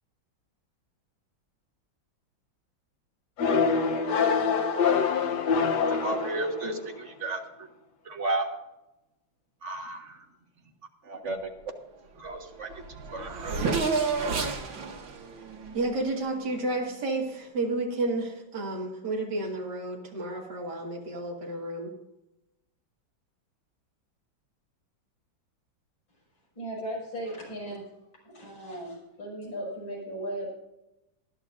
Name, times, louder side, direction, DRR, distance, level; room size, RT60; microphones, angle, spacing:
sound 1, 3.4-6.9, left 5 dB, 60° left, 1.5 m, -25 dB
voice 1, 5.9-7.4 8.0-8.5 9.6-10.2 11.0-11.5 12.2-12.8 13.1-13.6, right 2 dB, 40° right, 3 dB, 1.7 m, -33 dB
Race car auto racing / Accelerating revving vroom, 12.3-12.4 12.6-16.6, right 4 dB, 80° right, 2.3 m, -31 dB
voice 2, 15.7-21.9, right 2 dB, 60° right, -1 dB, 2.7 m, -31 dB
voice 3, 26.5-28.0 28.2-30.5, right 1 dB, 85° left, -3 dB, 6.6 m, -37 dB
20.5 x 11.5 x 2.6 m, 0.91 s
omnidirectional pair, 2.1 m